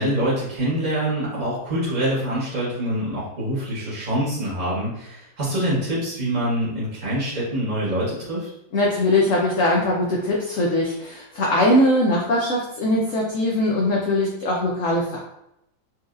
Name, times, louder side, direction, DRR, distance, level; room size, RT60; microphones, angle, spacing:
voice 1, 0.0-8.5, right 1 dB, 30° right, -9 dB, 0.8 m, -25 dB
voice 2, 8.7-15.2, left 1 dB, 80° left, -2 dB, 0.7 m, -21 dB
4.4 x 2.7 x 2.4 m, 0.82 s
omnidirectional pair, 2.1 m